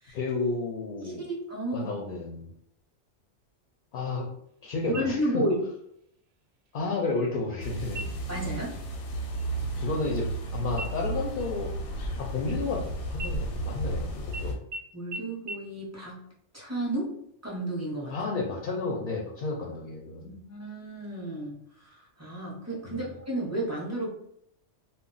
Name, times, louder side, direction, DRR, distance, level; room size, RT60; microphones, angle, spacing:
voice 1, 0.1-1.3 1.7-2.5 3.9-4.3 4.6-5.4 6.7-8.3 9.8-10.3 10.5-11.7 12.2-14.5 18.1-20.3 22.9-23.0, left 3 dB, 60° left, -1 dB, 0.6 m, -32 dB
voice 2, 1.2-1.9 4.8-5.5 8.3-8.8 14.9-16.3 16.5-17.1 17.4-18.2 20.2-24.1, right 1 dB, 15° right, -4 dB, 0.6 m, -32 dB
sound 1, 4.9-5.6 6.0-6.1 6.7-7.2 7.9-8.4 8.8-9.1 9.3-10.5 10.8-12.8 13.2-13.9 14.3-14.4 14.7-14.8 15.1-15.2 15.5-15.6, equal, 65° right, 0.8 m, -42 dB
sound 2, 7.6-14.6, right 2 dB, 90° left, 0.9 m, -33 dB
2.3 x 2.1 x 3.8 m, 0.73 s
omnidirectional pair, 1.2 m